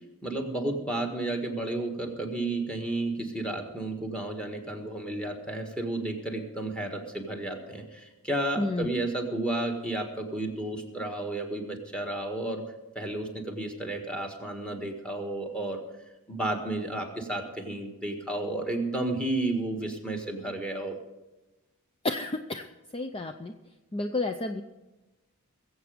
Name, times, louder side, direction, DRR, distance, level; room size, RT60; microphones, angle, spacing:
voice 1, 0.2-12.6 12.9-15.8 16.3-20.9, right 2 dB, 5° left, 3 dB, 1.7 m, -32 dB
voice 2, 8.6-8.9 22.0-22.6 22.9-23.5 23.9-24.6, left 2 dB, 25° left, 6 dB, 0.5 m, -30 dB
21.5 x 8.0 x 5.1 m, 1.1 s
head